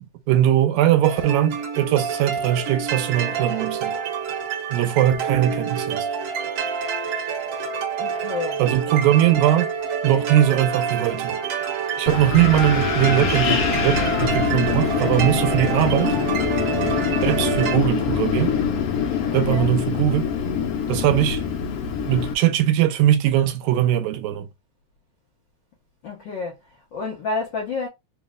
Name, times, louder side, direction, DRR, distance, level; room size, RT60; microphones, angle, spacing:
voice 1, 0.3-4.0 4.7-6.1 8.6-9.7 10.0-11.4 12.0-16.2 17.2-18.6 19.3-20.3 20.9-21.5 22.1-24.5, right 12 dB, 80° right, 2.0 m, -20 dB
sound 1, 1.0-17.8, right 6 dB, 65° right, 1.7 m, -27 dB
voice 2, 8.0-8.6 19.3-19.7 26.0-27.9, left 4 dB, 90° left, 1.0 m, -30 dB
Wind, 12.1-22.3, left 7 dB, 70° left, 1.4 m, -24 dB
4.6 x 2.0 x 3.5 m
omnidirectional pair, 3.3 m